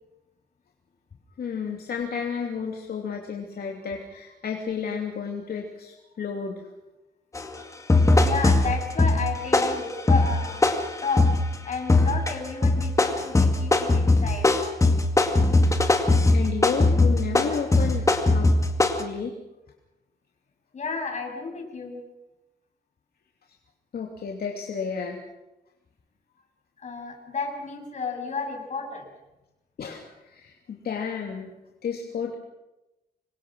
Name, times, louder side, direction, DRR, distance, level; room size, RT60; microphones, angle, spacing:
voice 1, 1.4-6.6 15.6-15.8 16.3-18.1 18.3-18.5 19.0-19.3 23.9-25.2 29.8-31.5 31.8-32.3, left 6 dB, 70° left, 1 dB, 3.0 m, -32 dB
sound 1, 7.4-7.5 7.9-11.5 11.9-12.3 12.6-19.0, left 2 dB, 20° left, 2.3 m, -20 dB
voice 2, 8.2-10.7 11.0-11.3 11.6-14.5 20.7-22.0 26.8-29.1, left 4 dB, 45° left, 2 dB, 7.3 m, -32 dB
27.0 x 23.5 x 6.4 m, 0.97 s
wide cardioid pair, 150°, 17 cm